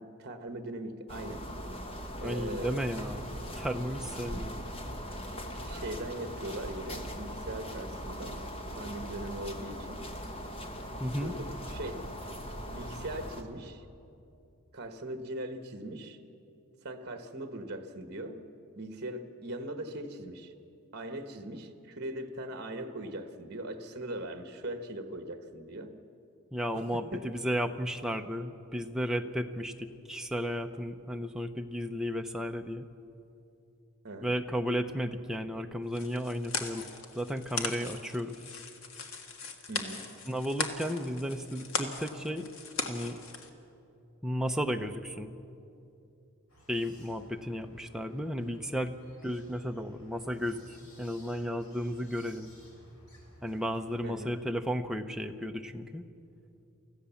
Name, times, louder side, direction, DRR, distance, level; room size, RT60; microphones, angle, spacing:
voice 1, 0.0-1.4 2.2-2.8 5.6-8.4 8.7-10.0 11.2-12.1 12.7-13.8 14.7-16.2 16.8-18.4 18.7-20.5 20.9-25.9 26.7-27.3 34.0-34.3 39.7-40.1 54.0-54.4, right 1 dB, 45° right, 7 dB, 1.3 m, -40 dB
sound 1, 1.1-13.4, equal, 25° left, 1.4 m, -40 dB
voice 2, 2.2-4.6 11.0-11.3 26.5-32.9 34.2-38.4 40.3-42.5 42.9-43.2 44.2-45.3 46.7-48.9 49.2-52.5 53.4-56.0, equal, ahead, 5 dB, 0.7 m, -34 dB
sound 2, 35.9-43.5, left 4 dB, 65° left, 1.7 m, -38 dB
sound 3, 46.5-54.1, left 1 dB, 85° left, 4.4 m, -57 dB
25.0 x 15.0 x 7.1 m, 2.7 s
head